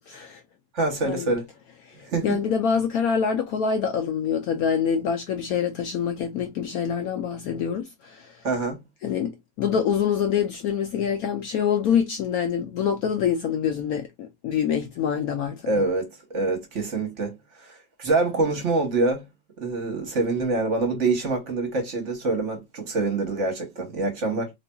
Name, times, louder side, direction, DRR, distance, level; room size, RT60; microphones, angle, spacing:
voice 1, 0.1-0.4 1.0-1.3 2.2-8.3 9.0-9.3 9.6-15.6, left 7 dB, 70° left, 0.9 m, -25 dB
voice 2, 0.7-1.4 2.0-2.4 8.4-8.8 15.7-19.2 19.6-24.5, right 3 dB, 45° right, 1.1 m, -25 dB
4.0 x 3.0 x 2.2 m
omnidirectional pair, 1.9 m